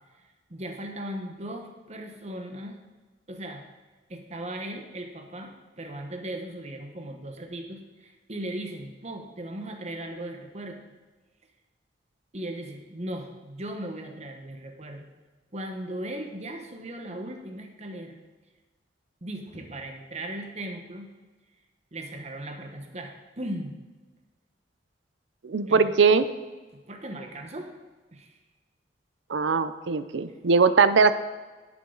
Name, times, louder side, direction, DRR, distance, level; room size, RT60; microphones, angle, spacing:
voice 1, 0.5-2.8 3.3-3.6 4.1-10.8 12.3-15.1 15.5-18.2 19.2-21.1 21.9-23.7 25.7-25.9 26.9-27.7 28.1-28.4, right 1 dB, 35° right, 4 dB, 1.1 m, -37 dB
voice 2, 25.4-26.3 29.3-31.1, right 5 dB, 85° right, 12 dB, 0.6 m, -20 dB
11.0 x 8.5 x 3.9 m, 1.3 s
head